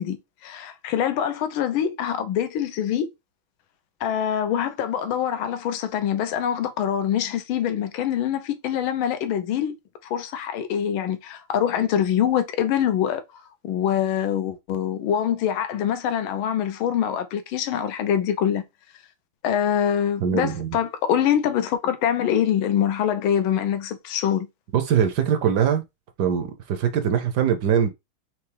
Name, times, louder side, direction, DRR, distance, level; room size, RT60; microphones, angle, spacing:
voice 1, 0.0-3.1 4.0-9.8 10.1-13.2 13.6-18.6 19.4-24.5, left 9 dB, 80° left, 1.5 m, -24 dB
voice 2, 20.2-20.8 24.7-25.8 26.2-27.9, right 8 dB, 65° right, 1.1 m, -22 dB
4.6 x 3.0 x 3.3 m
omnidirectional pair, 2.2 m